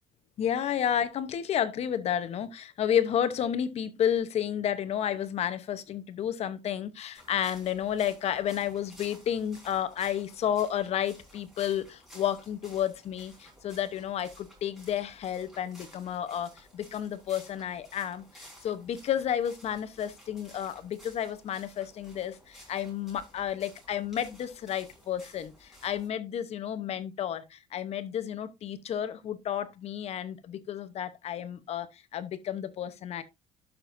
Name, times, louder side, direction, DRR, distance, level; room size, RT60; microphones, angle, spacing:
voice 1, 0.4-33.2, left 9 dB, 45° left, 0.8 m, -31 dB
sound 1, 7.1-26.1, equal, ahead, 4.3 m, -55 dB
12.0 x 5.9 x 2.6 m
cardioid pair, 160°, 15 cm